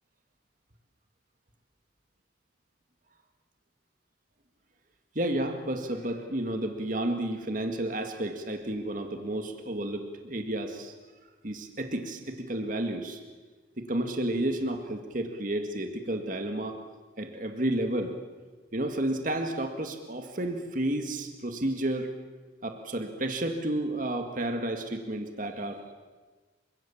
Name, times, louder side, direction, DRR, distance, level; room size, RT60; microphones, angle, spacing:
voice 1, 5.2-10.9 11.4-13.2 13.8-16.8 17.2-18.1 18.7-22.1 22.6-25.9, right 1 dB, 45° right, 5 dB, 2.0 m, -31 dB
29.0 x 25.0 x 7.3 m, 1.3 s
head